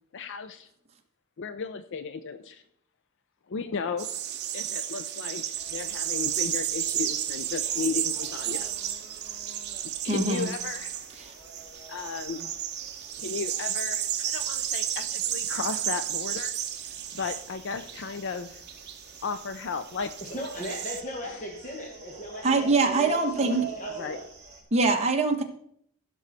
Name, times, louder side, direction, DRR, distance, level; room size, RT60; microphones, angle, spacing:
voice 1, 0.1-0.7 1.4-2.6 3.5-4.1 4.5-8.8 9.2-9.4 10.0-10.9 11.9-12.5 13.2-16.6 16.8-18.6 19.2-20.1 21.2-21.4 23.9-24.2, left 5 dB, 55° left, 10 dB, 0.5 m, -35 dB
sound 1, 4.0-21.0, right 11 dB, 50° right, 0.9 m, -33 dB
sound 2, 5.6-24.6, right 3 dB, 15° right, 3.2 m, -46 dB
voice 2, 10.1-10.5 11.2-11.3 22.4-23.6 24.7-25.4, right 3 dB, 30° right, 1 dB, 1.4 m, -23 dB
voice 3, 20.2-22.4 22.7-24.2, equal, 35° left, -1 dB, 1.5 m, -38 dB
15.5 x 6.2 x 4.2 m, 0.69 s
head